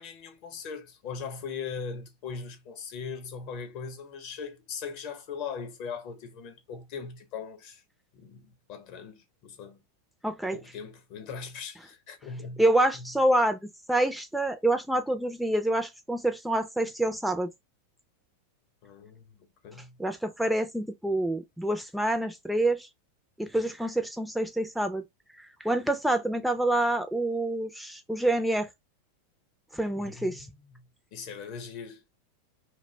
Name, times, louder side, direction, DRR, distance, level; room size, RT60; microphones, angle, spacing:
voice 1, 0.0-7.8 8.1-9.8 10.5-12.6 12.9-13.1 18.8-20.0 30.0-32.1, left 5 dB, 55° left, 0.7 m, -40 dB
voice 2, 10.2-10.6 12.6-13.6 13.9-17.5 20.0-22.9 23.4-25.0 25.6-28.7 29.7-30.5, right 1 dB, ahead, 0.3 m, -27 dB
2.4 x 2.1 x 3.2 m
hypercardioid pair, 110°, 0 cm